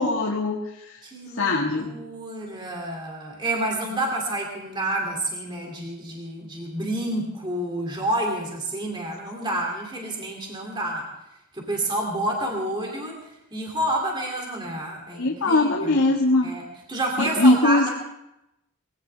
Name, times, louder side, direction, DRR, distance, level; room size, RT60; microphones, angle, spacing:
voice 1, 0.0-1.0 1.4-2.0 15.1-16.5 17.2-17.9, left 2 dB, 75° left, -1 dB, 1.7 m, -21 dB
voice 2, 1.0-11.1 11.5-13.2 13.5-16.0 16.4-16.6 16.9-17.9, right 1 dB, 20° right, 0 dB, 2.7 m, -29 dB
21.5 x 17.0 x 3.4 m, 0.88 s
head